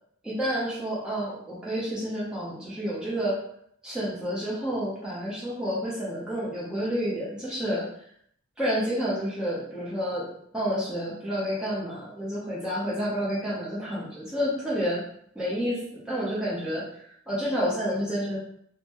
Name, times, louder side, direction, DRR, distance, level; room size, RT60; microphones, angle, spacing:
voice 1, 0.2-3.4 3.8-7.9 8.6-10.3 10.5-15.0 15.3-16.9 17.3-18.4, equal, 5° right, -9 dB, 0.8 m, -29 dB
3.9 x 2.1 x 2.9 m, 0.67 s
head